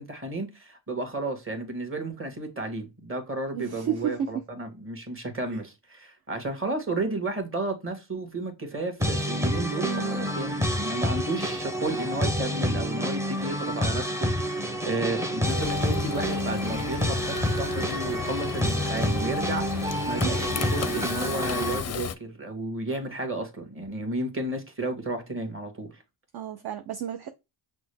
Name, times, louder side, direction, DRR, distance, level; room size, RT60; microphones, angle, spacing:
voice 1, 0.0-26.0, right 2 dB, 25° right, 1.6 m, -32 dB
voice 2, 3.5-4.4 5.5-5.6 9.8-10.2 20.2-20.3 26.3-27.3, right 9 dB, 50° right, 0.6 m, -32 dB
sound 1, 9.0-21.8, equal, 5° right, 0.6 m, -28 dB
Frying (food), 15.4-22.2, left 8 dB, 35° left, 0.5 m, -35 dB
6.0 x 2.3 x 3.3 m
cardioid pair, 90°, 50 cm